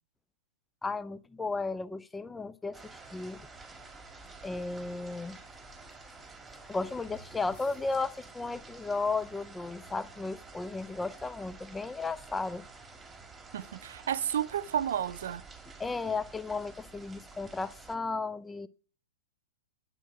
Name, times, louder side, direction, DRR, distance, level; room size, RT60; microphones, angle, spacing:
voice 1, 0.8-3.4 4.4-5.4 6.7-12.6 15.8-18.7, left 3 dB, 10° left, 0.5 m, -34 dB
sound 1, 2.7-18.0, right 4 dB, 10° right, 1.8 m, -50 dB
sound 2, 3.4-10.0, left 6 dB, 50° left, 3.6 m, -64 dB
voice 2, 13.5-15.4, right 10 dB, 60° right, 0.6 m, -31 dB
9.8 x 8.4 x 5.9 m
figure-of-eight pair, 110°, 0 cm